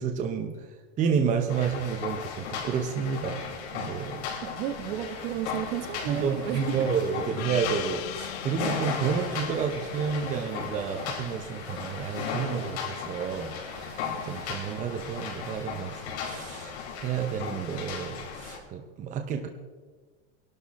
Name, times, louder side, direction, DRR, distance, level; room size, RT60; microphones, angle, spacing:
voice 1, 0.0-3.4 3.7-4.3 6.0-13.5 14.2-19.5, right 7 dB, 25° right, 4 dB, 0.9 m, -30 dB
sound 1, 1.5-18.6, left 6 dB, 90° left, 4.6 m, -36 dB
sound 2, 4.4-17.2, right 4 dB, 40° right, 2.6 m, -51 dB
voice 2, 4.4-6.9, right 11 dB, 60° right, 6 dB, 1.7 m, -33 dB
Gong, 7.4-12.1, left 19 dB, 65° left, 0.5 m, -41 dB
22.0 x 12.0 x 4.2 m, 1.4 s
supercardioid pair, 170°, 32 cm